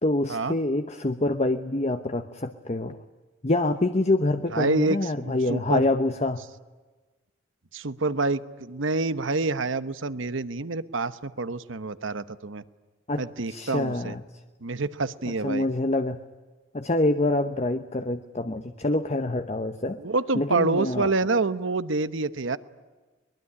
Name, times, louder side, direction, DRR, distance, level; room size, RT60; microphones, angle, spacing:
voice 1, 0.0-3.0 3.4-6.4 13.1-14.2 15.3-16.2 16.7-20.0 20.3-21.1, left 2 dB, 30° left, 8 dB, 0.9 m, -26 dB
voice 2, 4.5-5.9 7.7-12.6 13.2-14.1 14.6-15.6 20.0-22.6, right 3 dB, 70° right, 13 dB, 1.0 m, -27 dB
23.0 x 22.0 x 9.9 m, 1.3 s
head